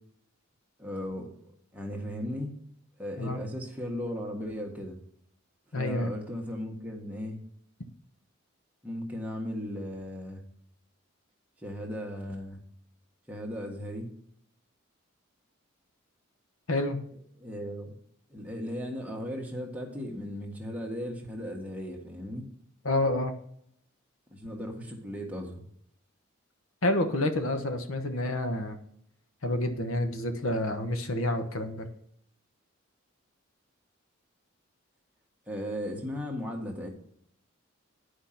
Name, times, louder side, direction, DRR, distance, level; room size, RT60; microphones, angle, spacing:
voice 1, 0.8-1.3 1.7-2.6 3.0-5.0 5.7-7.4 8.8-10.4 11.6-12.6 13.3-14.1 17.4-17.9 18.3-22.5 24.3-25.6 35.5-36.9, equal, 5° right, 0 dB, 1.5 m, -36 dB
voice 2, 5.7-6.1 16.7-17.0 22.8-23.3 26.8-28.8 29.4-31.9, left 1 dB, 80° left, 6 dB, 1.2 m, -28 dB
10.0 x 5.1 x 5.8 m, 0.68 s
head